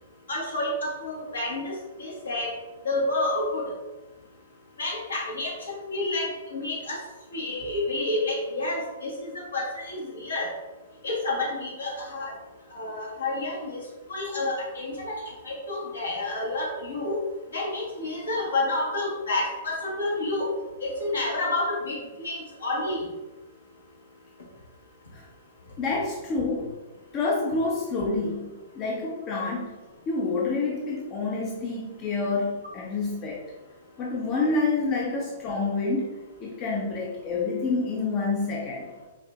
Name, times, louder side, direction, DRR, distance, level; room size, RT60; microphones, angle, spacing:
voice 1, 0.3-2.5 2.8-3.7 4.8-7.0 7.3-10.5 11.0-12.3 12.7-13.8 14.1-17.2 17.5-20.5 20.8-23.1, left 2 dB, 70° left, -3 dB, 1.4 m, -29 dB
voice 2, 25.8-26.7 27.1-28.5 28.7-29.7 30.1-33.4 34.0-36.1 36.4-38.9, left 3 dB, 30° left, -2 dB, 0.6 m, -28 dB
4.9 x 2.6 x 3.3 m, 1.1 s
figure-of-eight pair, 110°, 0 cm